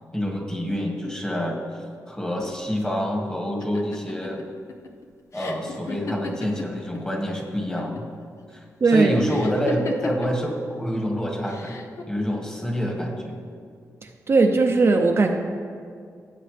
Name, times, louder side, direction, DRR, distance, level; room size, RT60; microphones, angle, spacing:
voice 1, 0.1-1.6 2.1-4.4 5.3-8.1 8.5-11.8 12.1-13.4, equal, 15° left, -1 dB, 1.8 m, -27 dB
sound 1, 3.6-7.2 7.5-8.1 9.2-10.5 11.4-12.0, left 2 dB, 55° left, 0.8 m, -34 dB
voice 2, 8.8-9.1 14.3-15.3, right 3 dB, 45° right, 2 dB, 0.7 m, -18 dB
15.5 x 7.5 x 3.4 m, 2.2 s
cardioid pair, 90°, 6 cm